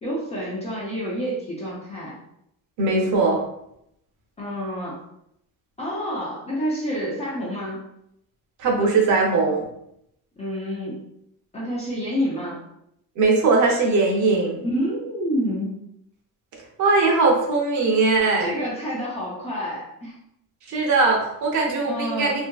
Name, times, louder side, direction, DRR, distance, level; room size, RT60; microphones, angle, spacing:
voice 1, 0.0-2.2 4.4-5.0 5.8-7.8 10.4-11.0 11.5-12.7 14.6-15.8 18.4-20.1 21.9-22.4, equal, 20° left, -5 dB, 0.4 m, -28 dB
voice 2, 2.8-3.4 8.6-9.7 13.2-14.6 16.8-18.5 20.7-22.5, right 3 dB, 50° right, -1 dB, 0.7 m, -20 dB
2.7 x 2.5 x 2.2 m, 0.78 s
cardioid pair, 170°, 37 cm